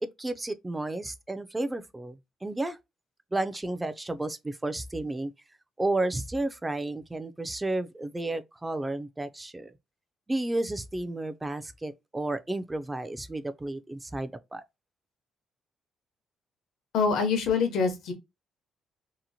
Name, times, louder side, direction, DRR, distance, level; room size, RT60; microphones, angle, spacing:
voice 1, 0.0-2.8 3.3-5.3 5.8-9.7 10.3-14.6, right 2 dB, 15° right, 0.4 m, -32 dB
voice 2, 16.9-18.1, left 5 dB, 80° left, 0.8 m, -25 dB
2.8 x 2.1 x 2.7 m
cardioid pair, 90°, 0 cm